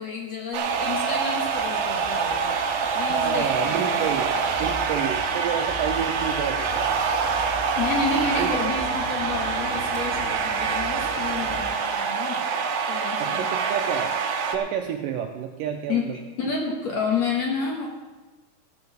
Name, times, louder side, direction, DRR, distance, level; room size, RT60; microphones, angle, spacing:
voice 1, 0.0-2.6 2.9-4.7 7.8-12.4 12.9-13.5 15.9-17.9, left 5 dB, 55° left, -1 dB, 2.1 m, -30 dB
sound 1, 0.5-14.6, right 5 dB, 70° right, 1.9 m, -26 dB
sound 2, 0.6-11.7, right 1 dB, 5° right, 0.9 m, -39 dB
voice 2, 3.1-4.3 4.6-6.9 8.4-8.5 13.2-14.2 14.5-16.2, right 8 dB, 85° right, 4 dB, 2.0 m, -29 dB
14.5 x 6.9 x 6.9 m, 1.2 s
omnidirectional pair, 4.6 m